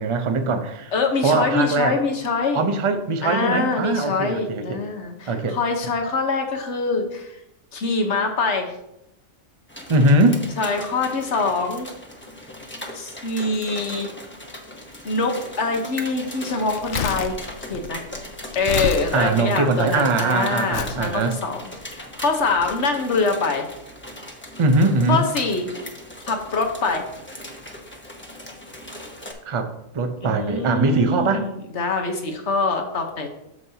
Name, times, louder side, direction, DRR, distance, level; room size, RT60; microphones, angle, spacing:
voice 1, 0.0-0.9 1.2-2.0 2.5-4.8 5.3-5.6 9.9-10.4 19.1-21.4 24.6-25.2 29.4-31.4, right 2 dB, 35° right, 7 dB, 0.5 m, -21 dB
voice 2, 0.9-2.6 3.2-7.4 7.7-8.7 10.6-11.9 12.9-14.1 15.0-17.3 17.7-18.0 18.5-23.7 25.1-25.7 26.3-27.1 30.2-33.3, left 3 dB, 55° left, 4 dB, 1.3 m, -24 dB
sound 1, 9.7-29.3, left 1 dB, 10° left, 0.9 m, -38 dB
Crumpling crinkling, 16.7-20.0 20.7-21.0 21.8-21.9, left 7 dB, 70° left, 1.0 m, -29 dB
9.3 x 7.2 x 2.8 m, 0.84 s
omnidirectional pair, 1.5 m